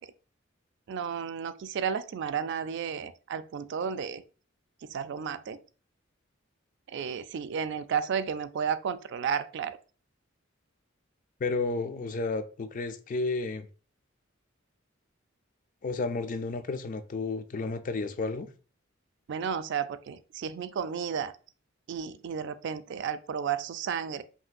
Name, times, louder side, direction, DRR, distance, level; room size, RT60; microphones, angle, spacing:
voice 1, 0.9-4.2 4.9-5.6 6.9-9.8 19.3-21.3 21.9-24.2, right 7 dB, 60° right, 0.3 m, -32 dB
voice 2, 11.4-13.7 15.8-18.5, left 3 dB, 40° left, 0.4 m, -32 dB
5.4 x 2.9 x 2.5 m
head